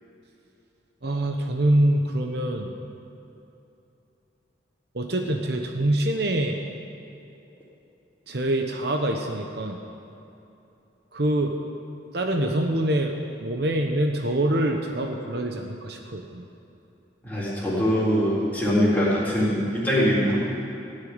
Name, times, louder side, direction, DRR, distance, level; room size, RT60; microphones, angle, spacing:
voice 1, 1.0-2.7 4.9-6.6 8.3-9.8 11.1-11.6 12.1-13.1 13.4-16.4, right 1 dB, 60° right, 3 dB, 1.0 m, -25 dB
voice 2, 17.2-20.4, equal, 10° left, -8 dB, 3.8 m, -22 dB
16.5 x 6.6 x 9.6 m, 2.8 s
head